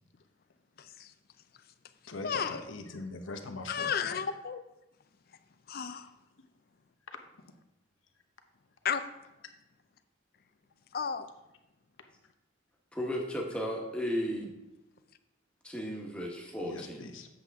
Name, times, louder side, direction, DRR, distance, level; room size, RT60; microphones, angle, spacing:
voice 1, 0.8-1.1 2.2-2.6 3.7-4.6 5.7-6.1 8.8-9.0 10.9-11.3, left 7 dB, 50° left, 0.5 m, -33 dB
voice 2, 2.1-4.1 16.6-17.3, left 3 dB, 85° left, 0.9 m, -42 dB
voice 3, 12.9-14.5 15.6-17.0, equal, 5° left, 1.2 m, -34 dB
7.7 x 7.4 x 3.6 m
head